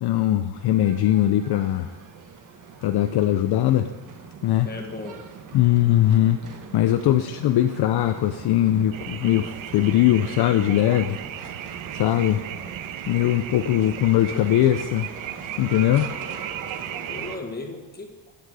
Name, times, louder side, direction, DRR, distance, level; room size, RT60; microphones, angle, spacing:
voice 1, 0.0-1.9 2.8-3.9 4.4-4.7 5.5-6.4 6.7-11.2 11.9-12.4 13.1-15.1 15.6-16.1, left 12 dB, 55° left, 8 dB, 0.6 m, -20 dB
sound 1, 0.5-17.4, right 6 dB, 45° right, 1.3 m, -41 dB
voice 2, 4.6-5.2 16.8-18.3, left 3 dB, 20° left, 3 dB, 1.7 m, -36 dB
sound 2, 8.9-17.4, right 11 dB, 80° right, 0.8 m, -36 dB
15.5 x 9.0 x 4.8 m, 1.1 s
cardioid pair, 165°, 46 cm